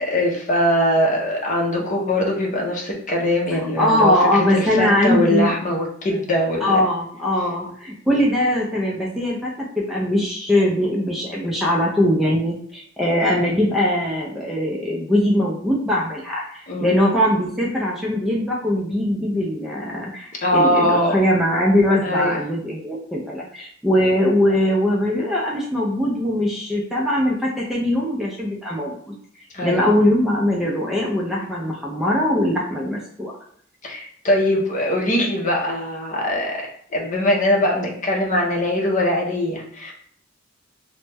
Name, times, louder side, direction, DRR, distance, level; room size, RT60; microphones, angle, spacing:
voice 1, 0.0-6.8 16.7-17.0 20.4-21.1 22.0-22.4 29.5-29.8 33.8-36.6 36.9-39.9, left 1 dB, 40° left, -1 dB, 0.7 m, -21 dB
voice 2, 3.5-5.5 6.6-29.1 29.6-33.3, left 1 dB, ahead, -4 dB, 0.4 m, -21 dB
3.0 x 2.1 x 3.3 m, 0.62 s
head